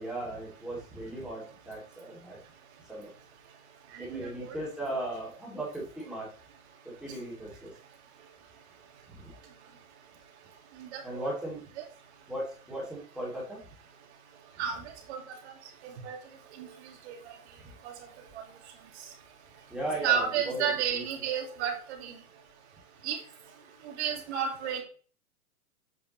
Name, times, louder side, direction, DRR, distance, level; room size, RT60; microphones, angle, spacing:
voice 1, 0.0-2.4 2.9-3.1 4.0-6.3 7.0-7.7 9.1-9.3 11.0-11.6 12.3-13.6 17.6-17.7 19.7-21.0, right 1 dB, ahead, -6 dB, 2.3 m, -37 dB
voice 2, 3.9-4.5 10.8-11.3 14.6-14.8 15.1-15.2 16.0-16.2 16.6-16.7 17.1-17.2 20.0-21.7 22.0-22.2 23.0-23.2 23.8-24.8, right 8 dB, 45° right, 3 dB, 2.2 m, -31 dB
8.1 x 5.3 x 3.0 m, 0.41 s
hypercardioid pair, 150°, 44 cm